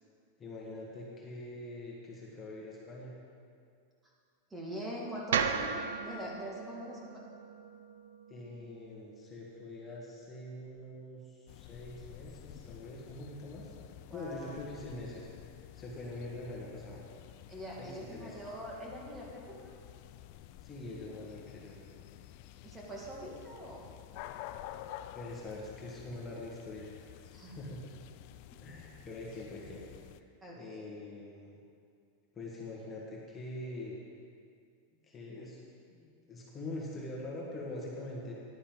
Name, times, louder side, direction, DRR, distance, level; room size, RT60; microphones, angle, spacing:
voice 1, 0.4-3.1 8.3-13.7 14.1-17.0 17.8-18.4 20.6-21.7 25.1-27.2 27.5-27.9 28.6-29.8 30.1-30.3 30.6-31.6 32.3-34.0 35.0-35.6 35.9-38.3, left 2 dB, 20° left, -4 dB, 1.7 m, -44 dB
voice 2, 4.5-7.2 14.1-14.6 17.5-19.7 21.9-22.1 22.6-23.9 27.3-27.6 30.4-30.9, equal, 15° right, -3 dB, 2.1 m, -43 dB
sound 1, 5.3-9.5, right 6 dB, 80° right, 0.6 m, -36 dB
sound 2, 11.5-30.2, left 13 dB, 55° left, 0.4 m, -51 dB
11.0 x 9.7 x 4.0 m, 2.3 s
supercardioid pair, 130°, 0 cm